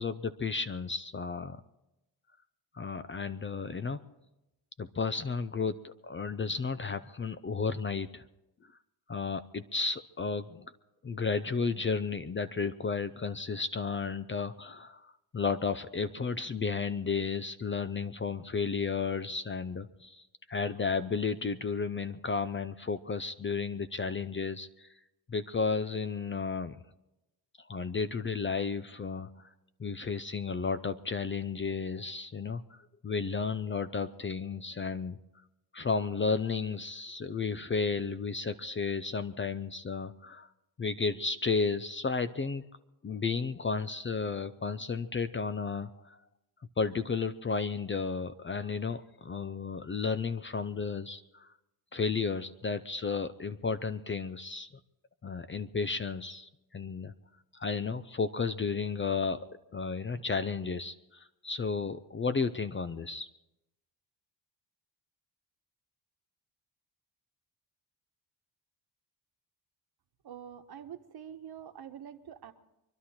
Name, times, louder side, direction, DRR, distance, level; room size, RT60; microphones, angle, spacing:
voice 1, 0.0-1.6 2.7-4.0 4.8-8.2 8.6-8.7 9.1-10.7 11.0-24.9 25.3-26.8 27.6-29.5 29.8-32.6 33.0-35.2 35.7-40.5 40.8-42.6 43.0-46.2 46.8-51.5 51.9-54.7 55.2-57.1 57.5-63.3, left 5 dB, 25° left, 12 dB, 0.6 m, -33 dB
voice 2, 70.2-72.5, right 9 dB, 55° right, 7 dB, 1.4 m, -46 dB
24.5 x 11.5 x 4.4 m, 0.93 s
cardioid pair, 90°, 46 cm